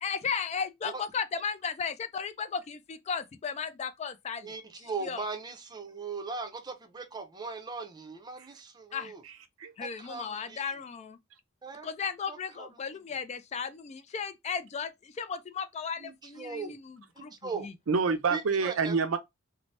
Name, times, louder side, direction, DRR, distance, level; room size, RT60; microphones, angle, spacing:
voice 1, 0.0-4.5 5.0-5.2 8.9-9.1 9.8-11.2 11.8-17.7, left 6 dB, 35° left, 0.3 m, -35 dB
voice 2, 4.4-9.2 10.0-10.6 11.6-11.9 12.3-12.8 16.0-16.8 17.2-17.7 18.3-19.0, right 4 dB, 20° right, 0.5 m, -39 dB
voice 3, 17.9-19.2, right 5 dB, 85° right, 0.6 m, -27 dB
2.7 x 2.0 x 3.2 m
head